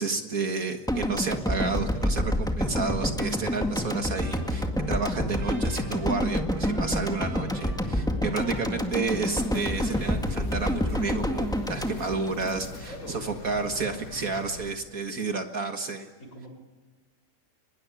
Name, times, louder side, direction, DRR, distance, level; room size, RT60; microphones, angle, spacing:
voice 1, 0.0-16.1, right 4 dB, 55° right, 6 dB, 2.1 m, -31 dB
sound 1, 0.9-13.1, equal, ahead, 1.8 m, -28 dB
Trumpet, 3.7-10.4, right 2 dB, 85° right, 5.6 m, -49 dB
sound 2, 9.3-14.7, left 5 dB, 70° left, 2.6 m, -43 dB
voice 2, 12.9-13.4 16.2-16.5, equal, 45° left, 3 dB, 6.6 m, -43 dB
24.0 x 21.0 x 9.7 m, 1.4 s
omnidirectional pair, 1.8 m